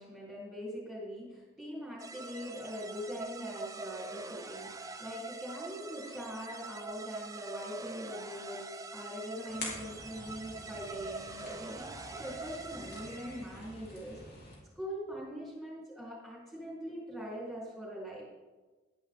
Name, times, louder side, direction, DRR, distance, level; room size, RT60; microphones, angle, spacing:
voice 1, 0.0-8.6 8.9-11.9 12.2-14.2 14.8-18.2, equal, ahead, -6 dB, 3.9 m, -42 dB
sound 1, 2.0-13.7, right 3 dB, 15° right, 0.6 m, -44 dB
sound 2, 9.5-14.5, left 2 dB, 50° left, 3.4 m, -47 dB
11.5 x 11.0 x 3.8 m, 1.2 s
head